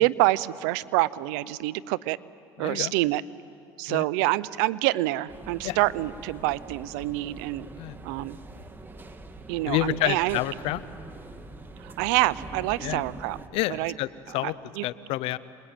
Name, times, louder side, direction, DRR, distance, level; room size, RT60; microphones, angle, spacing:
voice 1, 0.0-2.2 2.6-3.2 3.8-7.7 8.0-8.4 9.5-10.4 11.8-13.4 13.7-13.9 14.4-14.9, right 18 dB, 90° right, 18 dB, 0.6 m, -26 dB
voice 2, 2.6-2.9 3.9-4.0 5.6-5.8 7.8-8.0 9.7-10.8 12.8-13.0 13.5-14.1 14.3-14.5 14.8-15.4, left 16 dB, 75° left, 17 dB, 0.8 m, -28 dB
sound 1, 5.3-13.5, right 2 dB, 20° right, 2.0 m, -43 dB
27.0 x 21.5 x 9.1 m, 2.5 s
supercardioid pair, 100°, 10 cm